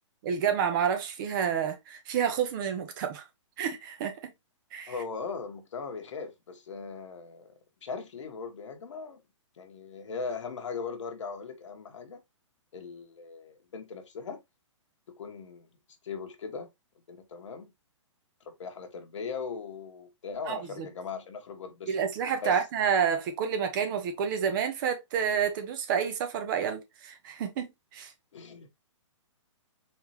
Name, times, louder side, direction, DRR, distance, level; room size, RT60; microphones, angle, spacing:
voice 1, 0.2-3.2 3.6-4.3 4.7-4.9 20.4-20.9 21.9-28.1, right 7 dB, 40° right, 1.2 m, -29 dB
voice 2, 4.9-7.5 7.8-9.2 9.6-12.2 12.7-14.4 15.2-15.7 16.0-16.7 17.1-17.7 18.4-21.9 22.4-22.5 28.3-28.7, left 5 dB, 70° left, 1.3 m, -39 dB
4.5 x 3.6 x 2.9 m
hypercardioid pair, 145°, 16 cm